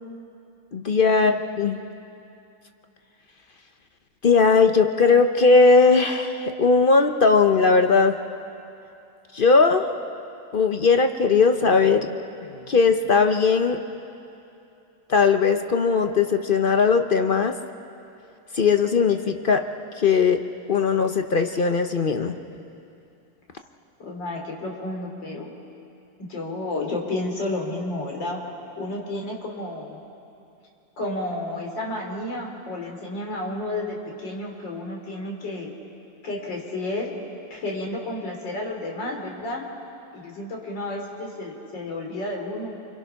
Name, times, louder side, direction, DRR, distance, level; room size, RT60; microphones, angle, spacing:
voice 1, 0.7-1.8 4.2-8.2 9.3-9.9 10.5-12.2 12.7-13.8 15.1-17.5 18.5-19.6 20.0-20.4 20.7-22.4, left 4 dB, 55° left, 6 dB, 0.6 m, -19 dB
voice 2, 24.0-25.5 26.2-28.4 28.8-30.0 31.0-35.7 36.2-37.1 37.5-39.6 40.1-42.7, left 2 dB, 85° left, 0 dB, 4.0 m, -31 dB
29.5 x 24.5 x 5.8 m, 2.7 s
omnidirectional pair, 1.9 m